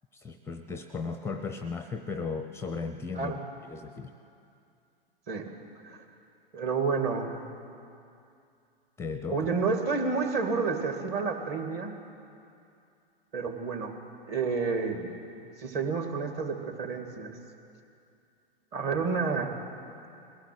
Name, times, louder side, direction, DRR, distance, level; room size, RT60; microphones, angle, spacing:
voice 1, 0.1-3.4 3.7-4.1 9.0-9.5, left 4 dB, 10° left, 9 dB, 0.6 m, -36 dB
voice 2, 6.5-7.4 9.3-11.9 13.3-14.0 14.3-15.2 15.6-17.3 18.7-19.6, right 4 dB, 35° right, 4 dB, 2.5 m, -30 dB
21.0 x 16.5 x 8.0 m, 2.5 s
figure-of-eight pair, 105°, 29 cm